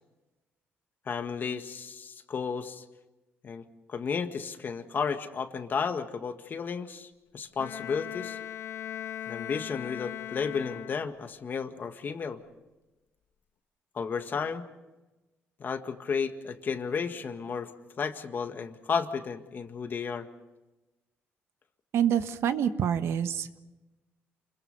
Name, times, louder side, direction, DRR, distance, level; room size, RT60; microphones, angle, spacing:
voice 1, 1.1-2.9 3.4-8.4 9.3-12.4 13.9-14.7 15.6-17.7 18.0-20.3, left 6 dB, 45° left, 7 dB, 1.8 m, -33 dB
Bowed string instrument, 7.6-11.4, left 11 dB, 75° left, 1.4 m, -39 dB
voice 2, 21.9-23.6, right 9 dB, 70° right, 10 dB, 1.3 m, -27 dB
28.5 x 21.5 x 5.5 m, 1.1 s
cardioid pair, 100°, 5 cm